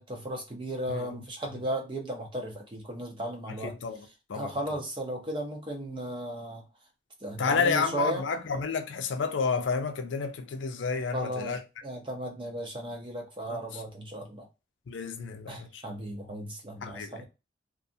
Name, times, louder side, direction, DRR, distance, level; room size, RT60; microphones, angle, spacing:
voice 1, 0.0-3.7 4.3-6.6 7.2-8.2 11.1-14.5 15.5-17.2, right 1 dB, 25° right, 0.6 m, -35 dB
voice 2, 0.9-1.2 3.6-4.0 4.3-4.5 7.4-11.6 13.5-13.6 14.9-15.8 16.8-17.2, left 5 dB, 80° left, 0.4 m, -30 dB
2.4 x 2.2 x 2.6 m
head